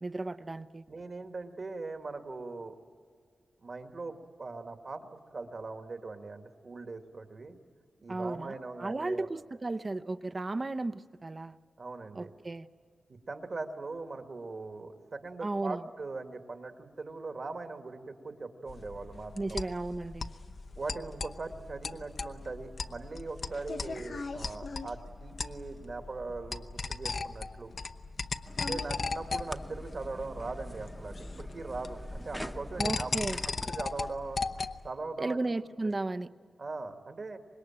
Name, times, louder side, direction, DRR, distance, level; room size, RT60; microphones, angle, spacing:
voice 1, 0.0-0.8 8.1-8.5 8.8-11.6 12.1-12.7 15.4-15.8 19.3-20.3 32.8-33.4 35.2-36.3, right 2 dB, 35° right, 11 dB, 0.7 m, -34 dB
voice 2, 0.9-2.8 3.6-7.6 8.0-9.3 11.8-12.3 13.1-19.6 20.8-27.7 28.6-33.1 33.4-34.4 34.8-35.4 35.8-35.9 36.6-37.4, right 3 dB, 55° right, 6 dB, 1.9 m, -40 dB
sound 1, 18.7-34.9, left 4 dB, 60° left, 0.8 m, -38 dB
sound 2, 28.4-33.7, equal, ahead, 0.9 m, -44 dB
25.5 x 21.0 x 8.8 m, 2.1 s
wide cardioid pair, 100°, 0 cm